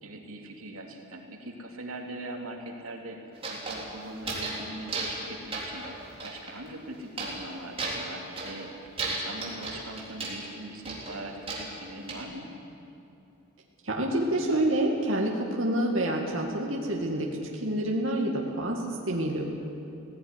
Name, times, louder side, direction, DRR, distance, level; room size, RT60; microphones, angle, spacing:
voice 1, 0.0-3.2 3.5-12.5, right 1 dB, 90° right, 2 dB, 2.7 m, -41 dB
sound 1, 3.3-4.6 4.9-5.3 5.5-6.5 7.2-7.5 7.8-8.6 9.0-10.4 10.8-12.2, right 3 dB, 25° right, 3.6 m, -34 dB
voice 2, 13.8-19.4, right 1 dB, 65° right, -1 dB, 2.1 m, -28 dB
17.0 x 16.5 x 9.8 m, 2.7 s
head